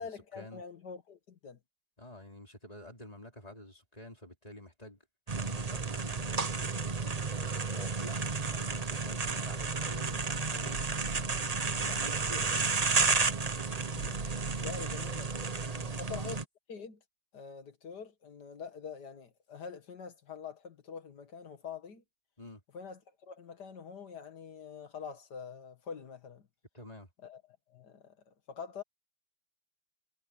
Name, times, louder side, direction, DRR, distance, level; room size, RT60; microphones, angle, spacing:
voice 1, 0.0-1.6 7.3-7.5 14.6-15.3 15.6-16.4 16.7-17.0 17.3-22.0 22.7-26.5 27.2-27.4 27.7-28.8, left 6 dB, 50° left, 2.1 m, -45 dB
voice 2, 2.0-5.0 5.3-6.5 7.6-10.8 11.8-12.7 14.7-15.0 15.7-16.2 22.4-22.6 26.7-27.1, left 1 dB, 15° left, 4.1 m, -49 dB
sound 1, 5.3-16.4, right 4 dB, 40° right, 0.5 m, -32 dB
sound 2, 9.9-15.0, right 4 dB, 75° right, 3.2 m, -46 dB
omnidirectional pair, 2.3 m